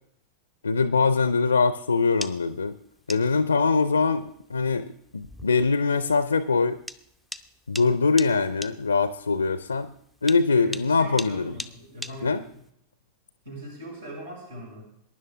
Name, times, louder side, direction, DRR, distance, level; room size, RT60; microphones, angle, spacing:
voice 1, 0.6-2.7 3.1-4.9 5.1-6.8 7.7-9.9 10.2-11.5 12.2-12.4, left 4 dB, 75° left, 13 dB, 0.6 m, -23 dB
sound 1, 1.9-12.7, left 1 dB, ahead, 0.6 m, -41 dB
voice 2, 10.6-12.4 13.4-14.9, right 1 dB, 70° right, -2 dB, 5.7 m, -40 dB
22.5 x 10.5 x 3.5 m, 0.73 s
figure-of-eight pair, 90°, 0 cm